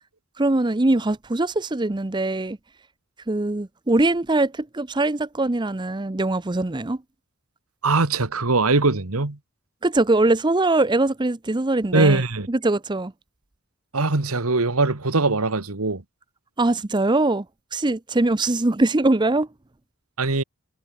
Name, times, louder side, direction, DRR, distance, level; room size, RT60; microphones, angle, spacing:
voice 1, 0.4-2.6 3.3-7.0 9.8-12.2 12.5-13.1 16.6-17.4 17.7-19.5, right 2 dB, 20° right, 0.6 m, -22 dB
voice 2, 7.8-9.4 11.9-12.5 13.9-16.0 20.2-20.4, right 3 dB, 80° right, 1.6 m, -21 dB
head